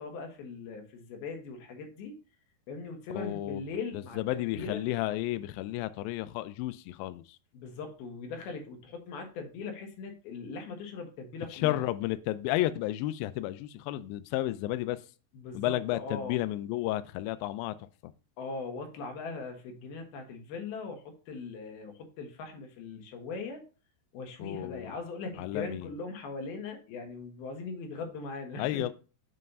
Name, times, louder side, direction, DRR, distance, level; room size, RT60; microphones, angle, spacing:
voice 1, 0.0-2.2 2.7-4.8 7.5-11.8 15.3-16.4 18.4-23.6 24.1-28.8, left 4 dB, 70° left, 3.1 m, -40 dB
voice 2, 3.1-3.6 3.9-7.4 11.5-15.0 15.5-17.7 18.0-18.1 24.4-24.9 25.4-25.9 28.6-28.9, left 15 dB, 90° left, 2.0 m, -32 dB
7.4 x 3.3 x 5.3 m
omnidirectional pair, 4.6 m